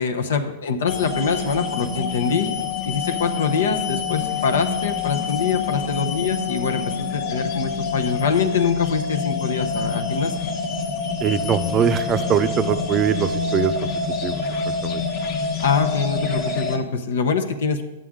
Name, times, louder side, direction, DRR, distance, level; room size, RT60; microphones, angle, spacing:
voice 1, 0.0-2.5 2.8-10.4 15.6-17.8, left 5 dB, 80° left, 7 dB, 0.8 m, -24 dB
sound 1, 0.9-16.8, left 5 dB, 50° left, 1.2 m, -26 dB
voice 2, 11.2-13.9 14.2-14.4 14.8-15.0, right 8 dB, 25° right, 11 dB, 0.5 m, -22 dB
11.0 x 7.6 x 3.7 m, 1.1 s
hypercardioid pair, 140°, 0 cm